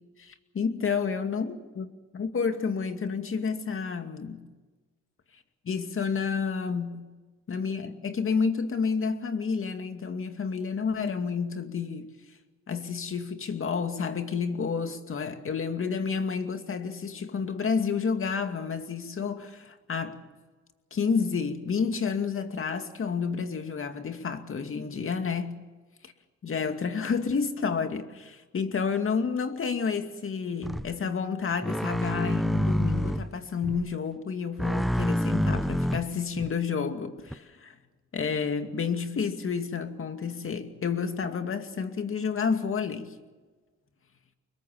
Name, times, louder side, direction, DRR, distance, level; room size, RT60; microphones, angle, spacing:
voice 1, 0.2-1.9 2.1-4.5 5.7-7.1 7.5-12.2 12.7-20.2 20.9-25.6 26.0-26.1 26.4-37.7 38.1-43.2, left 5 dB, 45° left, 2.4 m, -30 dB
sound 1, 30.6-30.9 31.6-33.3 33.6-33.9 34.6-36.5 37.3-37.4, equal, ahead, 0.6 m, -27 dB
25.5 x 22.0 x 7.1 m
cardioid pair, 90°, 30 cm